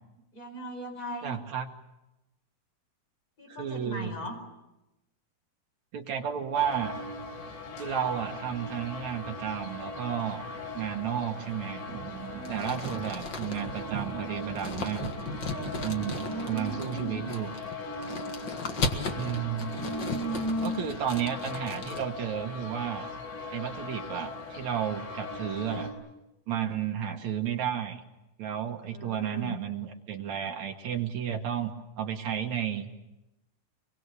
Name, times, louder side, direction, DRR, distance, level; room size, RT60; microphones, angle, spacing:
voice 1, 0.3-1.3 3.4-4.4 12.3-12.8 16.0-17.2 19.4-20.8 26.5-26.7 28.8-29.6, equal, 20° left, 4 dB, 5.0 m, -37 dB
voice 2, 1.2-1.7 3.5-4.1 5.9-6.9 7.8-10.4 10.7-11.8 12.5-15.1 15.8-16.2 16.5-17.5 19.2-19.8 20.6-23.1 23.5-25.9 26.5-28.0 28.4-32.9, right 9 dB, 65° right, 4 dB, 1.9 m, -32 dB
sound 1, 6.5-25.9, left 2 dB, 85° left, 6.0 m, -40 dB
sound 2, 11.9-17.2, right 9 dB, 90° right, 3.4 m, -42 dB
sound 3, 12.4-22.0, left 3 dB, 65° left, 1.0 m, -37 dB
25.0 x 23.0 x 8.2 m, 0.95 s
omnidirectional pair, 4.8 m